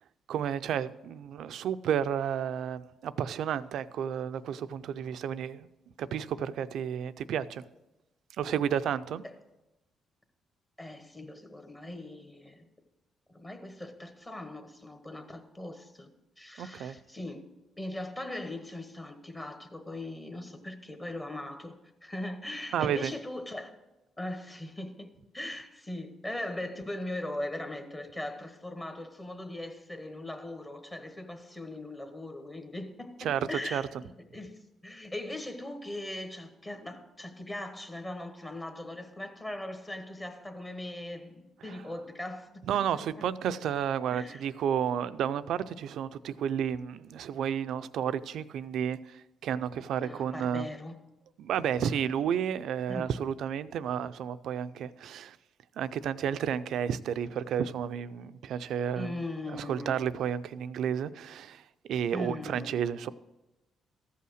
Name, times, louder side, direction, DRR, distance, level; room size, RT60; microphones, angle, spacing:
voice 1, 0.3-5.7 6.0-7.6 8.4-9.2 16.6-17.0 22.7-23.1 33.2-33.8 41.7-41.8 42.7-50.7 51.4-55.4 55.8-59.1 59.5-61.6 61.9-63.1, right 8 dB, 75° right, 0.4 m, -31 dB
voice 2, 10.8-12.7 13.3-16.1 16.4-17.4 17.8-23.7 24.2-25.1 25.3-42.6 44.1-44.4 50.0-51.0 51.8-52.0 52.9-53.1 58.9-60.0 62.1-62.8, left 1 dB, 25° left, 1.1 m, -40 dB
14.0 x 5.6 x 6.3 m
cardioid pair, 90°, 0 cm